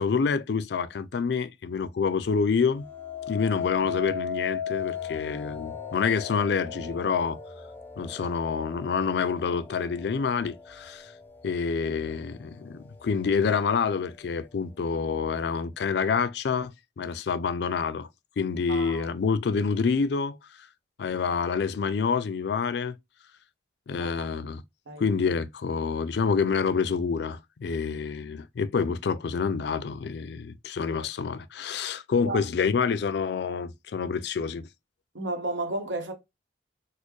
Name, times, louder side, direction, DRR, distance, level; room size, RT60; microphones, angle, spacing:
voice 1, 0.0-2.8 3.3-7.4 8.0-11.1 11.4-16.7 17.0-18.1 18.4-20.4 21.0-22.9 23.9-24.6 25.0-34.7, left 5 dB, 60° left, 0.4 m, -27 dB
sound 1, 2.7-11.9 12.4-12.9, left 7 dB, 10° left, 0.5 m, -37 dB
voice 2, 18.7-19.1 24.0-24.3 24.9-25.0 32.2-32.4 35.1-36.1, right 2 dB, 85° right, 1.1 m, -32 dB
4.2 x 2.1 x 3.0 m
head